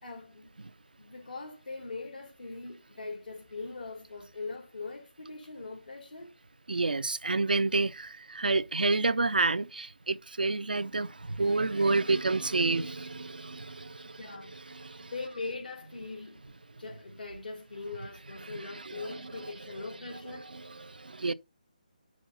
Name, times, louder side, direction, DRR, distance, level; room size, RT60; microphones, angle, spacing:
voice 1, 0.0-0.5 1.0-6.3 14.0-14.6 15.0-16.5 16.8-20.5, left 3 dB, 75° left, 3.2 m, -41 dB
voice 2, 6.7-14.2 14.5-15.1 18.4-19.8 20.3-21.3, right 3 dB, 85° right, 0.7 m, -30 dB
7.7 x 6.4 x 4.0 m
figure-of-eight pair, 155°, 5 cm